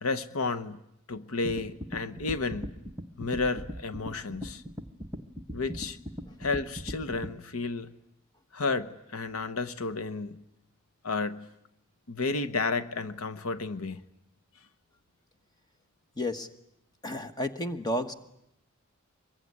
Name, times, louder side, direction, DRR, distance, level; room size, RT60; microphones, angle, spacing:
voice 1, 0.0-0.8 1.1-2.7 3.2-4.6 5.5-6.0 6.4-7.9 8.5-10.4 11.0-11.5 12.1-14.0, left 3 dB, 85° left, 1.0 m, -32 dB
sound 1, 1.4-7.3, equal, 15° right, 1.1 m, -39 dB
voice 2, 16.2-16.5 17.0-18.1, left 1 dB, 20° left, 1.4 m, -31 dB
24.5 x 22.0 x 9.7 m
head